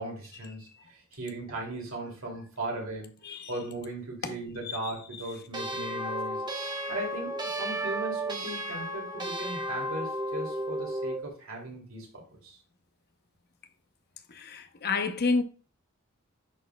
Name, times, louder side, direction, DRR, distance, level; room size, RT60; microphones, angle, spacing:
voice 1, 0.0-3.2 3.5-6.4 6.9-12.6, right 2 dB, 70° right, 2.6 m, -38 dB
sound 1, 5.5-11.2, right 1 dB, 20° right, 1.1 m, -33 dB
voice 2, 14.3-15.4, left 4 dB, 50° left, 0.8 m, -30 dB
10.0 x 4.3 x 2.3 m
head